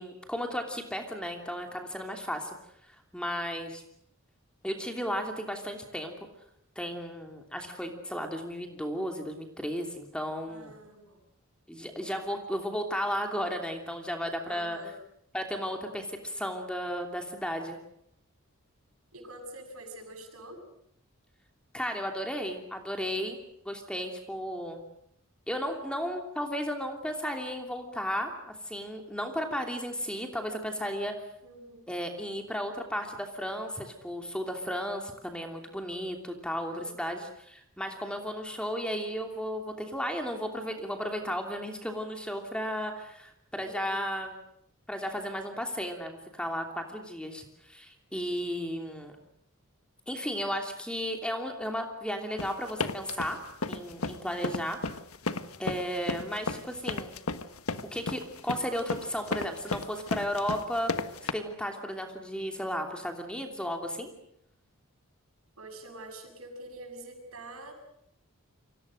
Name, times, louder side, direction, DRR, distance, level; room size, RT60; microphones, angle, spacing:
voice 1, 0.0-2.5 2.9-3.8 4.6-6.1 6.7-10.7 11.7-14.8 15.3-17.8 21.7-23.4 23.6-24.8 25.5-31.1 31.9-44.4 44.9-49.2 50.1-53.4 53.7-54.8 55.6-57.1 57.9-64.1, equal, 5° left, 3 dB, 2.9 m, -34 dB
voice 2, 10.5-11.2 14.4-14.9 19.1-20.6 31.4-31.9 36.7-37.2 43.6-44.0 65.6-67.7, right 1 dB, 85° right, 5 dB, 7.2 m, -46 dB
sound 1, 52.4-61.3, left 3 dB, 85° left, 1.5 m, -33 dB
29.5 x 25.0 x 6.5 m, 0.72 s
head